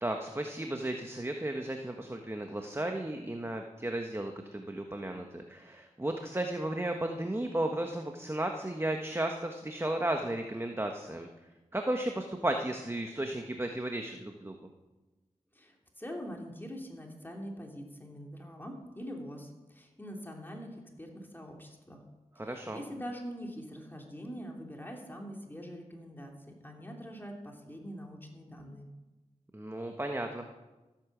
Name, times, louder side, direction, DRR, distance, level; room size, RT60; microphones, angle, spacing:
voice 1, 0.0-11.3 11.7-14.5 22.4-22.8 29.5-30.5, right 1 dB, 20° right, 4 dB, 1.3 m, -34 dB
voice 2, 15.5-22.0 22.4-28.9, equal, 15° left, 1 dB, 2.8 m, -44 dB
14.5 x 8.8 x 7.3 m, 1.1 s
cardioid pair, 55°, 13 cm